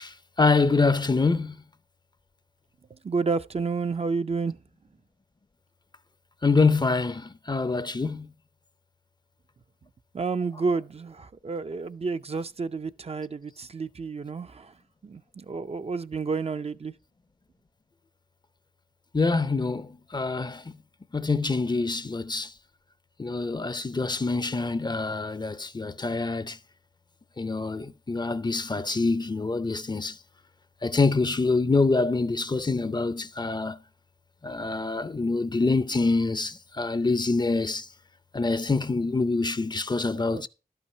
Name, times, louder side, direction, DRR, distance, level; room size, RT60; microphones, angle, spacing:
voice 1, 0.0-1.5 6.4-8.3 19.1-20.6 21.1-22.5 23.2-26.6 27.4-30.2 30.8-33.8 34.4-37.9 38.3-40.5, left 3 dB, 30° left, 0.5 m, -25 dB
voice 2, 2.9-4.6 10.1-14.7 15.0-16.9 40.1-40.5, right 4 dB, 40° right, 0.5 m, -30 dB
12.0 x 5.7 x 5.4 m
wide cardioid pair, 65°, 15 cm